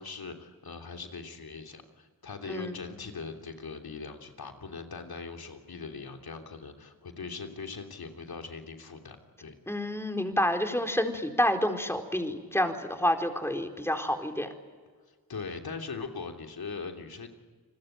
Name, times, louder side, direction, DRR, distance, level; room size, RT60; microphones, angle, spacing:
voice 1, 0.0-9.5 15.3-17.3, left 4 dB, 75° left, 4 dB, 3.2 m, -40 dB
voice 2, 2.5-2.8 9.7-14.5, left 1 dB, 5° left, 4 dB, 4.3 m, -28 dB
29.5 x 20.5 x 9.0 m, 1.4 s
cardioid pair, 40°, 37 cm